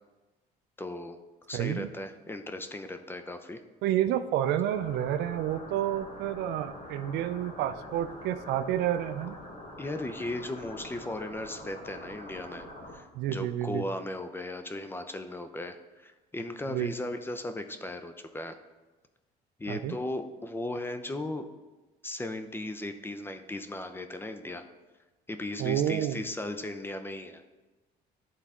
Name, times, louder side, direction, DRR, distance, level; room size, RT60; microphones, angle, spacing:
voice 1, 0.8-1.2 1.5-3.6 9.8-18.6 19.6-21.5 22.0-24.6 25.3-27.4, left 1 dB, 15° left, 8 dB, 0.5 m, -37 dB
voice 2, 1.5-1.9 3.8-9.4 13.1-13.8 16.7-16.9 19.7-20.0 25.6-26.2, right 11 dB, 80° right, 12 dB, 0.4 m, -29 dB
sound 1, 4.7-12.9, left 1 dB, 60° left, 2.3 m, -45 dB
11.5 x 4.0 x 3.6 m, 1.2 s
cardioid pair, 110°, 17 cm